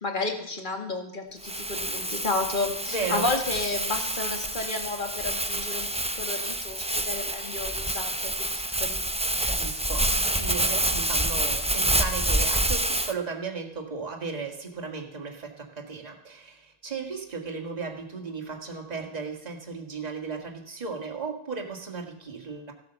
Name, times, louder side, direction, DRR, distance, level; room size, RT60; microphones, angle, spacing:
voice 1, 0.0-8.1 8.5-9.0, left 3 dB, 35° left, 4 dB, 2.1 m, -32 dB
Crumpling crinkling, 1.4-13.1, right 1 dB, 10° right, 0.4 m, -28 dB
voice 2, 2.9-3.3 9.6-22.7, right 4 dB, 25° right, 1 dB, 2.0 m, -35 dB
15.5 x 8.4 x 6.9 m, 0.73 s
omnidirectional pair, 1.5 m